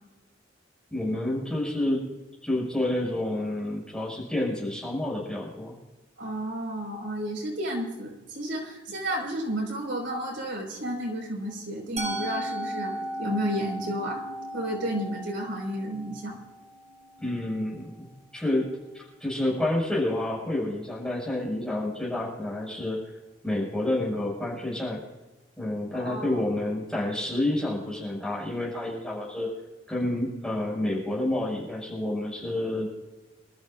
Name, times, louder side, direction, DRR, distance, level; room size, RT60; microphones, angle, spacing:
voice 1, 0.9-2.1 2.4-5.7 17.2-18.1 18.3-23.0 23.4-25.0 25.6-29.5 29.9-32.9, left 1 dB, 5° left, -5 dB, 6.2 m, -29 dB
voice 2, 6.2-14.2 14.5-16.4 26.0-26.4, right 1 dB, 90° right, -2 dB, 5.6 m, -32 dB
Musical instrument, 12.0-17.9, right 1 dB, 35° right, 1.9 m, -36 dB
26.5 x 13.5 x 2.6 m, 1.1 s
head